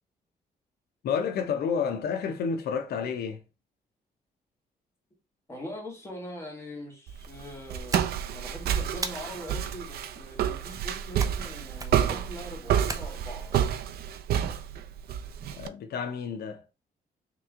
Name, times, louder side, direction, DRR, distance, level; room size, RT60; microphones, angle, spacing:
voice 1, 1.0-3.4 15.5-16.6, left 6 dB, 80° left, 0.6 m, -30 dB
voice 2, 5.5-13.6, equal, 15° left, 1.6 m, -42 dB
Walk footsteps, 7.1-15.7, right 9 dB, 80° right, 0.4 m, -29 dB
sound 1, 7.9-8.5 9.0-9.6 11.2-11.5 11.8-12.2 12.9-13.6, right 3 dB, 20° right, 0.5 m, -37 dB
3.4 x 3.0 x 3.5 m
cardioid pair, 140°, 16 cm